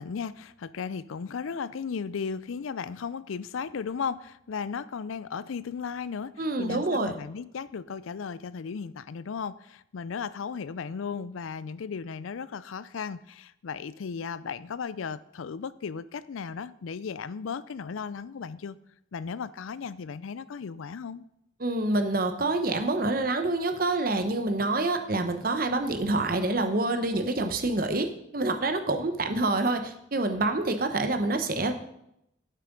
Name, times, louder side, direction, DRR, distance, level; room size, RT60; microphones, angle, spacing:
voice 1, 0.0-18.8 19.1-21.2, left 6 dB, 85° left, 17 dB, 0.4 m, -35 dB
voice 2, 6.4-7.1 21.6-31.7, right 2 dB, 45° right, 7 dB, 1.0 m, -27 dB
8.4 x 7.5 x 5.3 m, 0.79 s
head